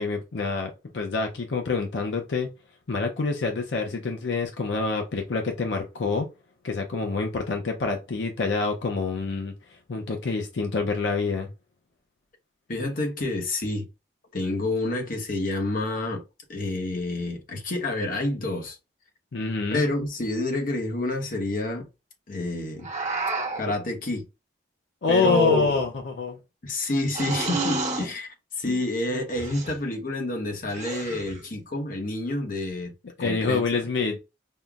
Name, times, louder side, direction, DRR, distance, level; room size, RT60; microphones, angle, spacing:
voice 1, 0.0-2.5 2.9-6.3 6.6-11.5 19.3-19.8 25.0-26.4 28.6-28.8 33.2-34.2, left 4 dB, 80° left, 0.6 m, -27 dB
voice 2, 12.7-13.9 14.3-16.2 16.5-18.8 19.7-21.9 22.3-22.9 23.6-24.2 25.1-25.8 26.6-28.3 28.6-32.9 33.2-33.6, left 2 dB, 50° left, 1.0 m, -28 dB
sound 1, 22.8-23.7 25.2-26.0 27.1-28.1 29.4-29.8 30.7-31.4, right 2 dB, 40° right, 1.1 m, -29 dB
5.4 x 2.1 x 2.3 m
head